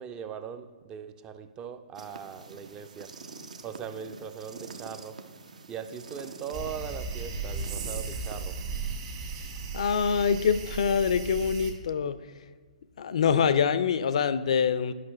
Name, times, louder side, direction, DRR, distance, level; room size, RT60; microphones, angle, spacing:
voice 1, 0.0-3.1 3.6-5.2 5.7-8.6, right 8 dB, 20° right, 10 dB, 0.4 m, -40 dB
sound 1, 2.0-8.7, right 4 dB, 65° right, 0.6 m, -46 dB
sound 2, 6.5-11.7, right 4 dB, 45° right, 1.4 m, -36 dB
voice 2, 9.7-12.2 13.0-14.9, left 7 dB, 55° left, 14 dB, 0.4 m, -25 dB
11.0 x 5.7 x 3.1 m, 1.5 s
figure-of-eight pair, 120°, 4 cm